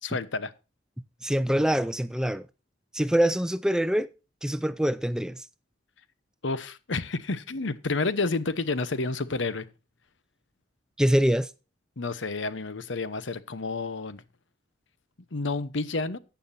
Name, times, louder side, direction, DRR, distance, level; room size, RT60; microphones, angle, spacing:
voice 1, 0.0-0.5 6.4-9.7 12.0-14.2 15.3-16.2, left 3 dB, 80° left, 0.9 m, -30 dB
voice 2, 1.2-2.5 2.9-4.1 4.4-5.4 11.0-11.5, equal, 5° right, 0.4 m, -24 dB
14.0 x 9.3 x 2.7 m
head